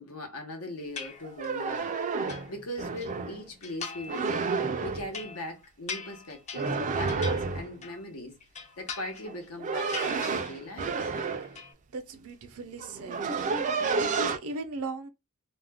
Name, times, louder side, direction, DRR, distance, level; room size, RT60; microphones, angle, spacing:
voice 1, 0.0-4.5 4.8-8.4 8.8-11.1, left 1 dB, 90° left, 0.9 m, -40 dB
sound 1, 1.0-1.7 2.0-3.1 3.6-4.3 4.6-8.1 8.4-9.5 9.8-10.8 11.1-11.7, left 5 dB, 30° left, 0.4 m, -42 dB
sound 2, 1.2-3.4 4.1-5.1 6.5-7.7 9.3-11.6 12.4-12.5 12.8-14.4, right 4 dB, 35° right, 0.3 m, -30 dB
voice 2, 11.9-13.3 14.0-15.1, right 3 dB, 80° right, 0.6 m, -37 dB
2.4 x 2.1 x 3.4 m
head